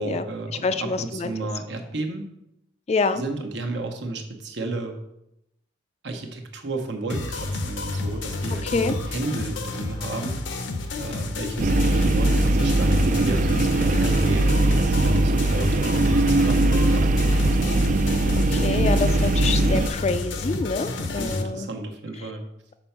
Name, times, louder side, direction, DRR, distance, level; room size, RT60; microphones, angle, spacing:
voice 1, 0.0-2.2 3.1-5.0 6.0-10.4 11.0-17.2 21.0-22.4, right 2 dB, 70° right, 3 dB, 1.0 m, -33 dB
voice 2, 0.6-1.3 2.9-3.2 8.6-8.9 18.5-21.7, left 4 dB, 35° left, 10 dB, 0.3 m, -26 dB
sound 1, 7.1-21.4, left 3 dB, 80° left, 0.7 m, -30 dB
sound 2, 11.6-19.9, right 2 dB, 40° right, 0.3 m, -20 dB
6.1 x 4.4 x 5.7 m, 0.84 s
head